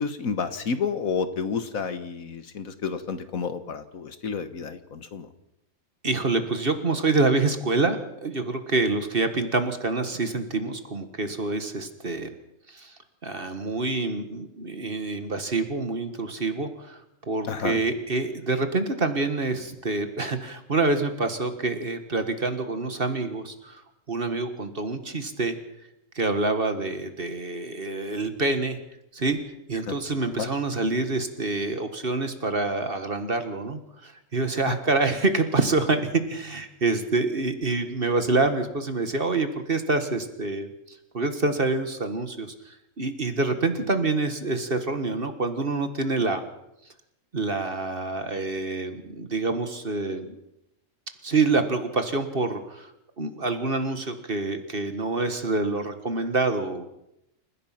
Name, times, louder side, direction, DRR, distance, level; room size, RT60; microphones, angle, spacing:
voice 1, 0.0-5.3 17.5-17.8 29.9-30.0 30.4-30.5 34.7-34.8, left 5 dB, 65° left, 10 dB, 1.7 m, -30 dB
voice 2, 6.0-12.3 12.7-12.9 13.2-17.0 17.3-23.8 24.1-25.6 26.2-28.8 29.1-29.4 29.7-46.4 47.3-50.4 51.2-52.9 53.2-56.8, right 3 dB, 40° right, 8 dB, 1.8 m, -26 dB
28.5 x 16.0 x 5.9 m, 0.84 s
omnidirectional pair, 1.6 m